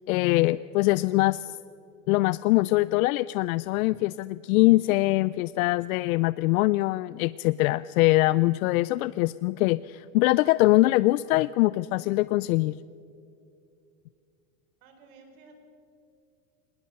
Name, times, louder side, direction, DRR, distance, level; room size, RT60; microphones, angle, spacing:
voice 1, 0.1-1.5 2.1-12.7, left 19 dB, 90° left, 18 dB, 0.5 m, -23 dB
voice 2, 14.8-15.6, right 4 dB, 80° right, 5 dB, 4.6 m, -53 dB
20.0 x 20.0 x 6.6 m, 2.6 s
supercardioid pair, 165°, 41 cm